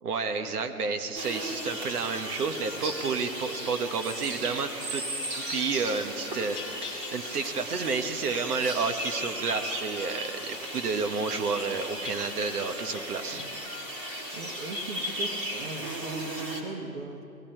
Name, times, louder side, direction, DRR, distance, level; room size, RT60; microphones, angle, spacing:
voice 1, 0.0-5.0 5.3-6.6 7.1-13.4, right 4 dB, 75° right, 7 dB, 1.3 m, -30 dB
sound 1, 1.1-16.6, right 1 dB, 25° right, 1.7 m, -36 dB
sound 2, 1.2-16.0, left 7 dB, 25° left, 0.9 m, -48 dB
sound 3, 5.1-8.7 9.2-10.1 10.5-13.6, left 4 dB, ahead, 0.5 m, -46 dB
voice 2, 14.3-17.2, right 3 dB, 50° right, 4 dB, 1.6 m, -39 dB
18.0 x 15.0 x 4.5 m, 2.6 s
hypercardioid pair, 155°, 46 cm